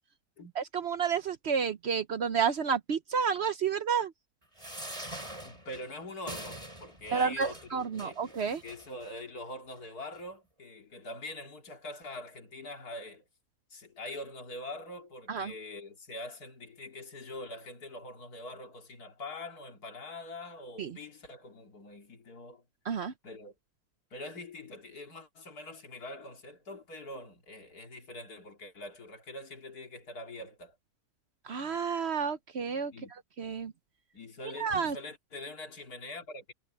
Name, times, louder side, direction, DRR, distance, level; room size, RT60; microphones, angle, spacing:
voice 1, 0.6-4.1 7.1-8.6 15.3-15.5 20.8-21.0 22.9-23.1 31.5-32.9 33.4-33.7 34.6-35.0, right 6 dB, 55° right, 0.9 m, -30 dB
sound 1, 4.6-9.1 9.8-9.9 10.1-10.2, right 1 dB, 20° right, 5.8 m, -44 dB
voice 2, 5.4-8.3 8.6-13.2 13.7-22.6 23.2-23.5 24.1-30.8 32.9-33.1 34.1-36.5, left 2 dB, 85° left, 3.1 m, -44 dB
omnidirectional pair, 1.6 m